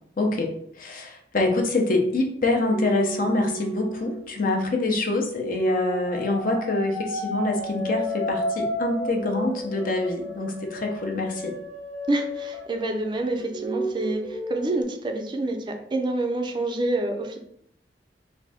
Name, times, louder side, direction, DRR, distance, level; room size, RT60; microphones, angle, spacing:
voice 1, 0.2-11.5, left 2 dB, 50° left, 2 dB, 0.7 m, -25 dB
sound 1, 2.7-4.8 5.4-13.1 13.4-14.8, equal, ahead, 0.7 m, -32 dB
voice 2, 12.1-17.4, right 2 dB, 25° right, 4 dB, 0.4 m, -27 dB
3.6 x 2.6 x 3.4 m, 0.70 s
head